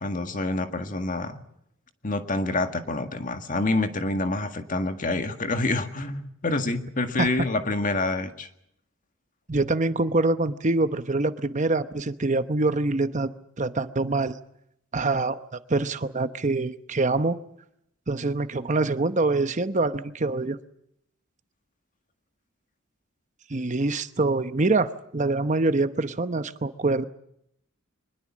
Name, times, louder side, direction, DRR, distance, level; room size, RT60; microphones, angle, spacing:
voice 1, 0.0-1.4 2.0-8.5, left 2 dB, 40° left, 7 dB, 1.8 m, -27 dB
voice 2, 9.5-13.3 13.6-14.4 14.9-15.4 15.7-17.4 18.1-20.6 23.5-27.0, right 3 dB, 35° right, 11 dB, 0.9 m, -25 dB
24.0 x 21.0 x 7.4 m, 0.76 s
head